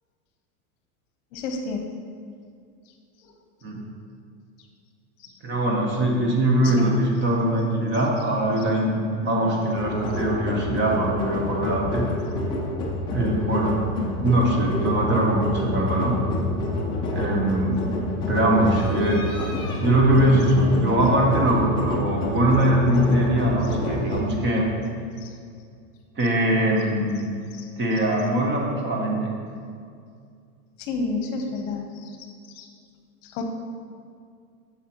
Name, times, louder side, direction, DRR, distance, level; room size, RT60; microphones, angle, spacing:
voice 1, 1.3-1.8 3.2-3.3 5.2-5.3 6.6-6.9 17.6-17.8 25.2-25.3 27.5-27.7 30.8-32.3 32.5-32.7 33.2-33.4, left 3 dB, 55° left, 4 dB, 0.9 m, -31 dB
voice 2, 5.4-12.1 13.1-13.8 14.2-16.1 17.1-17.8 18.3-19.2 19.8-24.7 26.2-27.2 27.8-29.3, right 1 dB, 25° right, 0 dB, 0.9 m, -22 dB
sound 1, 9.7-24.2, left 2 dB, 10° left, 0.3 m, -28 dB
7.4 x 7.3 x 3.0 m, 2.2 s
supercardioid pair, 145°, 45 cm